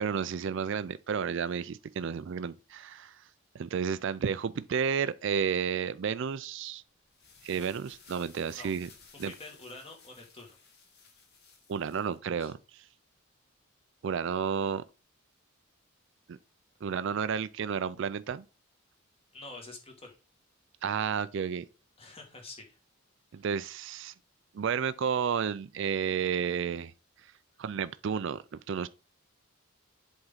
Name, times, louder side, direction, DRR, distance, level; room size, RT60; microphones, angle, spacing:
voice 1, 0.0-3.2 3.5-6.8 7.4-8.9 9.2-9.3 11.7-12.8 14.0-14.8 16.3-16.4 16.8-18.4 20.8-21.7 23.3-24.1 24.5-26.9 27.6-28.4 28.7-28.9, right 7 dB, 60° right, 0.4 m, -31 dB
sound 1, 7.0-12.2, left 5 dB, 50° left, 1.9 m, -57 dB
voice 2, 9.2-10.6 12.4-12.5 19.3-20.1 22.0-22.8 23.3-23.4, left 2 dB, 25° left, 2.0 m, -47 dB
7.9 x 3.6 x 5.7 m
head